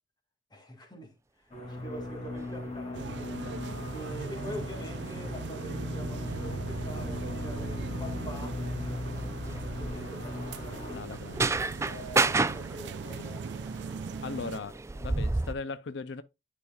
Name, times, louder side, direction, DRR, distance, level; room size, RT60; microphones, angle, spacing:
voice 1, 0.5-3.2 3.9-8.7 9.8-13.8, equal, 25° left, 1.6 m, -45 dB
sound 1, 1.5-11.0, left 2 dB, 40° left, 2.3 m, -38 dB
sound 2, 2.3-2.5 3.4-15.5, right 3 dB, 15° right, 0.3 m, -34 dB
sound 3, 2.9-14.6, right 5 dB, 75° right, 0.4 m, -39 dB
voice 2, 10.7-11.6 13.1-13.3 14.2-16.2, left 4 dB, 85° left, 0.4 m, -39 dB
9.6 x 5.2 x 2.3 m
head